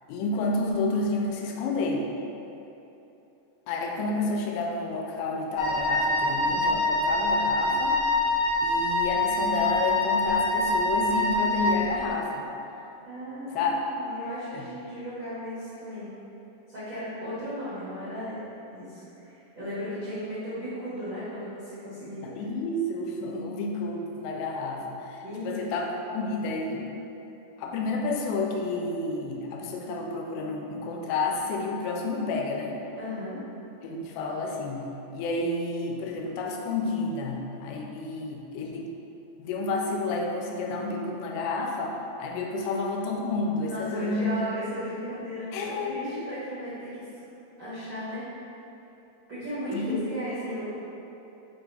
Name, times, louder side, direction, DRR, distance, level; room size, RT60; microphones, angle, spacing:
voice 1, 0.1-2.1 3.7-8.0 8.6-12.5 13.5-13.7 14.5-14.6 22.2-26.9 27.6-32.8 33.8-34.9 35.1-38.9 39.4-44.3 45.5-46.1 49.7-50.0, left 3 dB, 85° left, 0 dB, 2.4 m, -30 dB
Wind instrument woodwind instrument, 5.6-11.9, left 2 dB, 70° left, 2.2 m, -25 dB
voice 2, 13.0-16.1 16.7-18.4 18.7-22.5 25.2-25.6 33.0-33.4 43.7-47.1 47.6-48.3 49.3-50.6, equal, 80° right, -14 dB, 1.1 m, -36 dB
5.6 x 2.3 x 3.9 m, 2.9 s
omnidirectional pair, 4.2 m